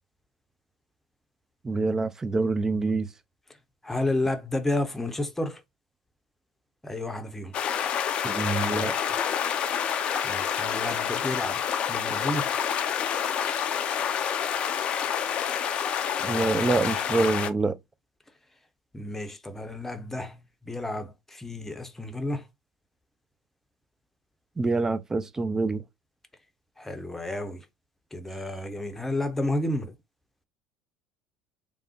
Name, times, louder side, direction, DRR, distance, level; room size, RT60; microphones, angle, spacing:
voice 1, 1.6-3.1 8.2-9.0 16.2-17.8 24.6-25.8, right 3 dB, 20° right, 0.4 m, -26 dB
voice 2, 3.8-5.6 6.8-7.6 10.2-12.5 18.9-22.5 26.8-27.7 28.1-29.9, left 1 dB, 10° left, 0.7 m, -31 dB
sound 1, 7.5-17.5, left 8 dB, 45° left, 0.4 m, -28 dB
3.3 x 2.1 x 2.9 m
figure-of-eight pair, 65°, 3 cm